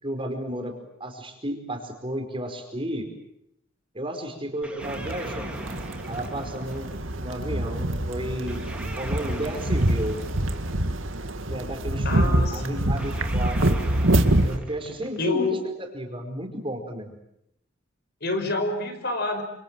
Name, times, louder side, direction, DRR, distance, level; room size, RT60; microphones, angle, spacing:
voice 1, 0.0-0.7 1.0-3.1 3.9-5.7 6.1-6.9 7.2-8.6 9.0-10.2 11.5-13.8 14.4-17.1, right 1 dB, 25° right, 4 dB, 5.0 m, -33 dB
sound 1, 4.6-7.2 8.5-11.0 13.0-15.5, right 1 dB, 5° right, 3.3 m, -41 dB
sound 2, 4.8-14.6, right 1 dB, 90° right, 2.1 m, -26 dB
voice 2, 12.1-12.9 15.2-15.6 18.2-19.4, left 2 dB, 55° left, 7 dB, 5.4 m, -27 dB
29.0 x 26.5 x 7.7 m, 0.78 s
head